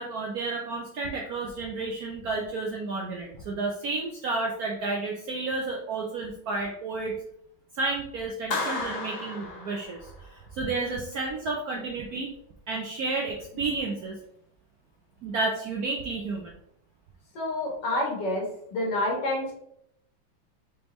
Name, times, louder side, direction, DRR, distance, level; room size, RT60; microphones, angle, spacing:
voice 1, 0.0-7.2 7.8-10.0 10.5-12.3 12.7-14.2 15.2-16.5 17.9-18.0, right 3 dB, 65° right, -1 dB, 0.9 m, -31 dB
Clapping, 8.5-10.4, left 3 dB, 35° left, 1.1 m, -33 dB
voice 2, 17.4-19.5, left 1 dB, 60° left, -2 dB, 1.8 m, -28 dB
5.1 x 3.4 x 3.0 m, 0.74 s
omnidirectional pair, 2.2 m